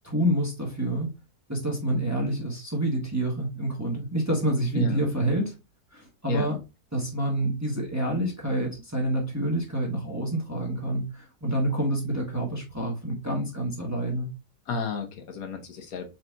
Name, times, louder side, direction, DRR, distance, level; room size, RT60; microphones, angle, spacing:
voice 1, 0.0-1.1 1.5-5.6 5.9-6.6 6.9-14.3, right 1 dB, 10° right, -1 dB, 1.1 m, -27 dB
voice 2, 14.7-16.1, left 4 dB, 70° left, 5 dB, 1.2 m, -32 dB
4.4 x 3.9 x 2.4 m, 0.25 s
omnidirectional pair, 1.6 m